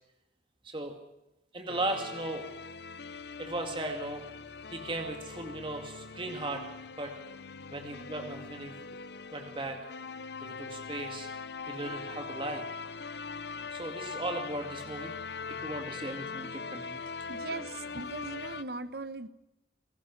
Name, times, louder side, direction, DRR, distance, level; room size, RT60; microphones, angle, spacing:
voice 1, 0.6-1.0 1.5-2.5 3.4-4.2 4.7-6.6 7.0-7.1 7.7-8.8 9.3-9.8 10.4-11.3 11.6-12.7 13.7-15.1 15.5-17.0, right 2 dB, 30° right, 2.2 m, -37 dB
sound 1, 1.7-18.6, left 5 dB, 60° left, 0.8 m, -41 dB
voice 2, 17.3-19.3, right 2 dB, 60° right, 1.1 m, -39 dB
28.0 x 17.5 x 6.0 m
head